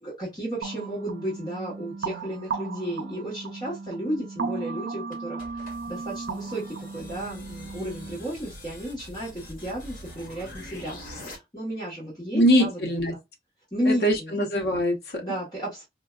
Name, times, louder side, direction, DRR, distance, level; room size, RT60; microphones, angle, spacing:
voice 1, 0.0-12.8 13.1-13.2 13.7-14.3 15.2-15.8, equal, 25° left, 1.3 m, -33 dB
sound 1, 0.6-8.2, right 4 dB, 80° right, 0.5 m, -36 dB
sound 2, 5.1-11.4, left 1 dB, 50° left, 1.3 m, -44 dB
voice 2, 12.3-13.1 13.9-15.2, equal, 65° left, 0.9 m, -22 dB
4.5 x 2.2 x 2.3 m
head